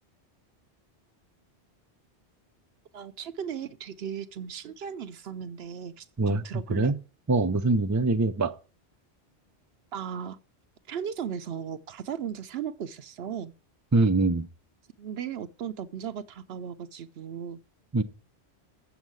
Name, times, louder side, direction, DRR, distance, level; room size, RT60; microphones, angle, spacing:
voice 1, 2.9-6.9 9.9-10.4 10.9-13.5 15.0-17.6, right 8 dB, 70° right, 0.9 m, -36 dB
voice 2, 7.3-8.5 13.9-14.5 17.9-18.0, right 3 dB, 20° right, 0.5 m, -23 dB
7.2 x 7.2 x 7.7 m
omnidirectional pair, 1.1 m